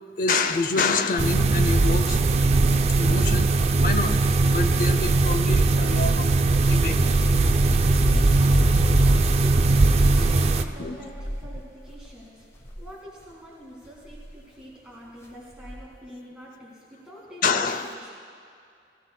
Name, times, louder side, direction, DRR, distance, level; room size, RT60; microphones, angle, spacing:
voice 1, 0.2-2.2 3.0-4.1 4.5-6.3 6.6-7.0 10.8-11.0 17.4-17.9, left 4 dB, 45° left, 8 dB, 0.6 m, -26 dB
sound 1, 1.2-10.6, right 3 dB, 35° right, 0.3 m, -20 dB
sound 2, 6.6-12.1 12.6-12.9 14.1-14.4 15.5-16.0, equal, 15° left, 0.8 m, -28 dB
voice 2, 7.8-9.7 10.1-12.4 12.8-17.5 17.7-18.1, equal, 5° right, -6 dB, 1.7 m, -45 dB
19.0 x 15.0 x 2.2 m, 2.4 s
head